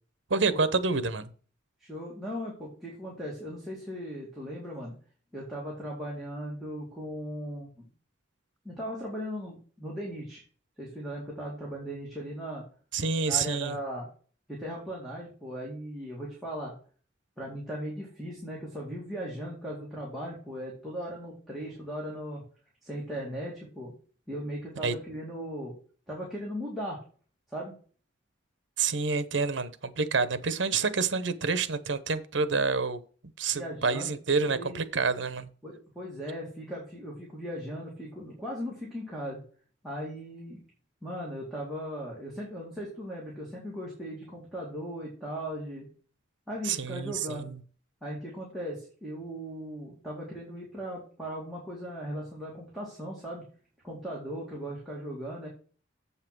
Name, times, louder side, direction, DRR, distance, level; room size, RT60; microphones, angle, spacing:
voice 1, 0.3-1.3 12.9-13.8 24.8-24.9 28.8-33.0 33.4-35.5 46.6-47.6, right 4 dB, 70° right, 0.9 m, -28 dB
voice 2, 1.8-5.0 5.3-7.7 8.6-10.4 10.8-12.6 13.3-14.1 14.5-16.7 17.4-22.4 22.8-23.9 24.3-25.7 26.1-27.0 27.5-27.7 33.5-34.2 34.4-34.8 35.6-39.4 39.8-40.6 41.0-45.9 46.5-47.5 48.0-53.5 53.8-55.5, equal, ahead, 2.3 m, -38 dB
7.7 x 5.7 x 6.1 m
head